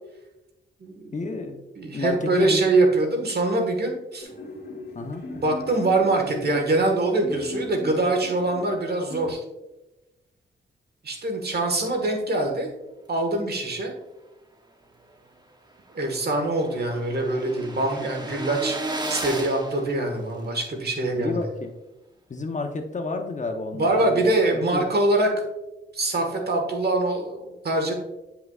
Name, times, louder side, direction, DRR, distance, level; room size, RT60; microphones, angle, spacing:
voice 1, 1.1-1.6 1.9-2.7 4.9-5.2 21.1-21.7 22.3-24.9, left 3 dB, 35° left, 5 dB, 0.8 m, -31 dB
voice 2, 1.8-4.3 5.4-9.4 11.0-12.7 13.1-13.9 15.9-18.8 19.1-21.4 23.7-25.3 25.9-27.9, right 2 dB, 50° right, 3 dB, 1.5 m, -24 dB
sound 1, 4.2-9.3, left 2 dB, 55° left, 1.9 m, -38 dB
sound 2, 15.1-15.2 15.5-15.6 15.8-20.7, right 2 dB, 20° right, 1.0 m, -34 dB
9.4 x 5.7 x 2.4 m, 1.0 s
cardioid pair, 85°, 21 cm